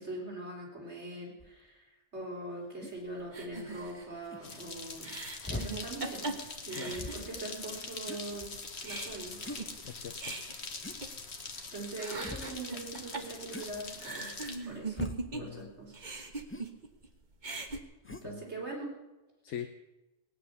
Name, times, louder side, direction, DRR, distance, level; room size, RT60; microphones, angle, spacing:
voice 1, 0.0-5.1 5.5-6.3 6.7-8.5 8.8-9.4 11.7-14.4 14.7-15.0 15.4-16.0 18.2-18.9, right 2 dB, 65° right, -2 dB, 4.3 m, -42 dB
sound 1, 1.4-1.5 2.8-3.0 4.2-4.4 5.4-5.7 6.8-7.4 8.1-8.7 9.4-9.7 10.8-11.0 12.2-12.6 13.5-13.9 14.9-15.3 16.5-16.7 18.0-18.3, left 2 dB, 10° left, 0.7 m, -42 dB
sound 2, 3.3-7.7 8.1-8.2 8.5-11.6 11.9-15.6 15.9-17.1 17.3-17.8, right 3 dB, 40° right, 1.4 m, -41 dB
sound 3, 4.4-14.6, left 4 dB, 60° left, 1.7 m, -43 dB
voice 2, 9.8-10.4 15.3-15.7 18.1-18.4 19.4-19.7, left 9 dB, 80° left, 7 dB, 1.1 m, -42 dB
18.5 x 9.7 x 6.9 m, 1.0 s
omnidirectional pair, 1.3 m